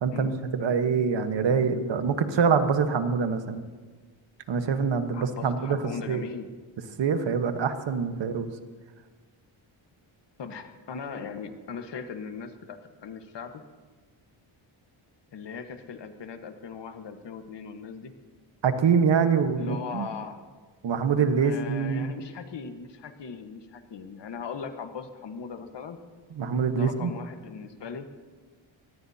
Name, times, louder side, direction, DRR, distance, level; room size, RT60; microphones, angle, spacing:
voice 1, 0.0-3.6 4.5-5.8 6.1-6.2 7.0-8.5 18.6-20.1 20.8-22.1 26.4-27.1, right 6 dB, 60° right, 8 dB, 1.4 m, -25 dB
voice 2, 5.1-6.6 10.4-13.6 15.3-18.1 19.6-20.4 21.4-26.0 26.7-28.1, left 6 dB, 55° left, 7 dB, 1.4 m, -39 dB
24.0 x 19.0 x 2.8 m, 1.4 s
cardioid pair, 120°, 50 cm